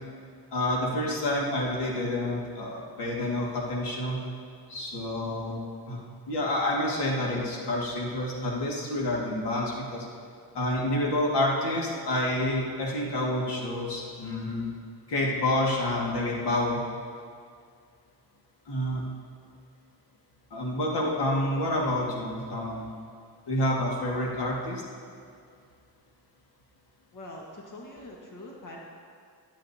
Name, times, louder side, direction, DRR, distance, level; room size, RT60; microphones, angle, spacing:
voice 1, 0.5-4.2 4.7-5.6 5.9-6.0 6.3-10.1 10.5-14.7 15.1-16.8 18.7-19.0 20.5-22.9 23.5-24.8, left 1 dB, 80° left, -3 dB, 2.2 m, -28 dB
voice 2, 27.1-28.8, left 1 dB, 50° left, -3 dB, 1.7 m, -43 dB
16.5 x 11.5 x 2.9 m, 2.2 s
cardioid pair, 130°, 40 cm